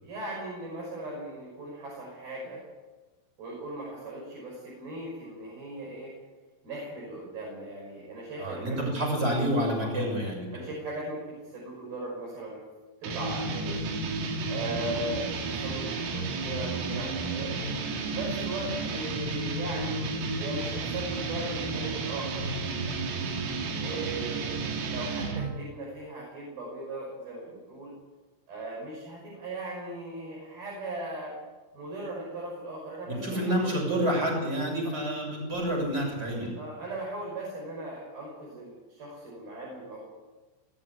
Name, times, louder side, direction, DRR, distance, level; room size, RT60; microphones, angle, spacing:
voice 1, 0.0-2.6 3.4-6.1 6.6-8.9 10.5-12.6 13.0-14.0 14.5-17.7 18.1-20.1 20.4-23.2 23.8-24.5 24.9-27.9 28.5-31.4 31.7-34.1 36.6-40.1, right 1 dB, 45° right, -4 dB, 7.6 m, -38 dB
voice 2, 8.4-10.6 14.8-15.0 23.9-24.0 33.1-36.5, right 1 dB, 20° right, 0 dB, 7.1 m, -29 dB
sound 1, 13.0-25.6, right 3 dB, 80° right, 5.3 m, -32 dB
21.0 x 14.0 x 10.0 m, 1.3 s
omnidirectional pair, 6.0 m